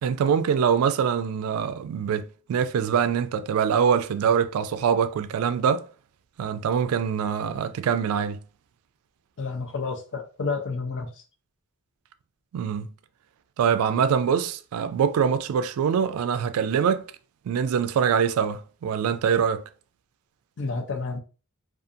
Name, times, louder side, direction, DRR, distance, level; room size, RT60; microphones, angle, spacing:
voice 1, 0.0-5.9 6.4-8.4 12.5-12.9 13.6-17.0 17.4-19.7, right 7 dB, 80° right, 0.3 m, -24 dB
voice 2, 9.4-11.2 20.6-21.2, left 4 dB, 60° left, 0.6 m, -30 dB
2.5 x 2.4 x 2.6 m
head